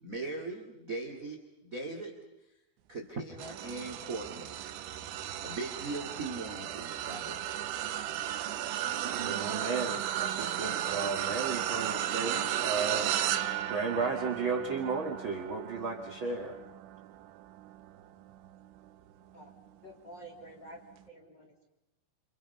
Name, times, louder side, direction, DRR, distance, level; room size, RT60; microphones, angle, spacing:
voice 1, 0.0-2.2 2.9-4.6 5.4-7.5, right 3 dB, 35° right, 3 dB, 1.2 m, -39 dB
sound 1, 3.4-18.9 19.4-19.7 20.9-21.0, right 11 dB, 80° right, 3.3 m, -35 dB
voice 2, 9.0-16.5, right 4 dB, 60° right, 1 dB, 1.3 m, -34 dB
voice 3, 19.8-20.8 21.1-21.7, right 1 dB, 25° left, 0 dB, 3.1 m, -49 dB
29.5 x 28.0 x 5.5 m, 0.92 s
omnidirectional pair, 5.6 m